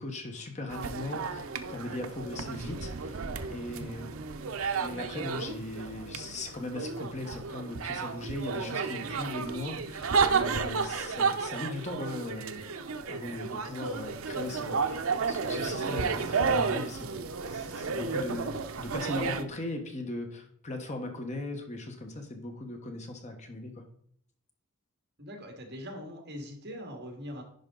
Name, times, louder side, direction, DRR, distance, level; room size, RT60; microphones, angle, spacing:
voice 1, 0.0-4.1 4.8-12.6 13.1-17.2 17.5-23.8, left 2 dB, 35° left, 4 dB, 1.1 m, -39 dB
sound 1, 0.7-19.4, right 5 dB, 70° right, 0.6 m, -32 dB
voice 2, 25.2-27.4, equal, 50° right, 3 dB, 1.9 m, -42 dB
10.5 x 5.2 x 3.8 m, 0.65 s
head